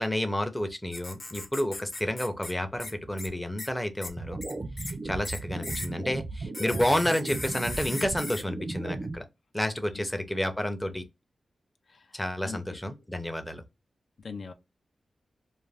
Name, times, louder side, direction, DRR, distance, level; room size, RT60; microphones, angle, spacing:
voice 1, 0.0-4.4 5.0-9.2 9.5-11.0 12.1-13.6, left 1 dB, 10° left, 0.5 m, -30 dB
sound 1, 0.9-2.5 2.8-2.9 3.2-3.3 3.6-3.7 4.0-4.1 4.4-4.9 5.2-5.9 6.5-8.4, left 2 dB, 40° left, 0.8 m, -38 dB
sound 2, 4.2-9.2, right 3 dB, 50° right, 0.4 m, -36 dB
voice 2, 11.9-12.8 14.2-14.5, left 4 dB, 65° left, 0.4 m, -42 dB
2.4 x 2.2 x 3.2 m
cardioid pair, 75°, 0 cm